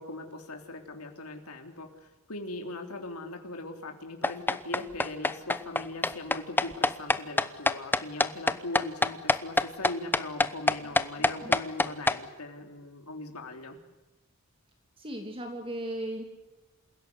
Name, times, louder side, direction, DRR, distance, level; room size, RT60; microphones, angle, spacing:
voice 1, 0.0-13.8, left 2 dB, 80° left, 3 dB, 3.4 m, -40 dB
sound 1, 4.2-12.2, left 2 dB, 10° left, 0.8 m, -25 dB
voice 2, 15.0-16.2, right 1 dB, 25° right, 4 dB, 2.6 m, -36 dB
28.0 x 16.5 x 9.6 m, 1.1 s
head